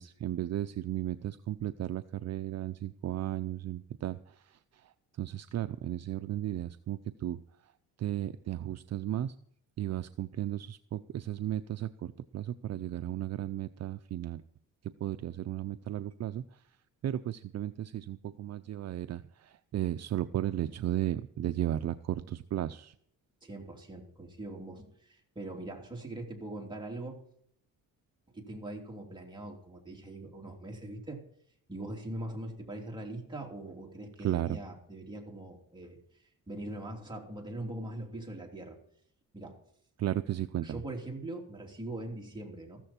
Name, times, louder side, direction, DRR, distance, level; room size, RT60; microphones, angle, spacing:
voice 1, 0.0-4.2 5.2-7.4 8.0-9.3 9.8-14.4 15.0-16.4 17.0-22.9 34.2-34.6 40.0-40.8, right 12 dB, 50° right, 11 dB, 0.6 m, -34 dB
voice 2, 23.4-27.2 28.3-31.2 31.7-36.0 36.5-38.8 39.3-39.6 40.6-42.8, right 1 dB, 15° right, 0 dB, 3.1 m, -42 dB
14.5 x 13.5 x 4.4 m, 0.67 s
cardioid pair, 140°, 33 cm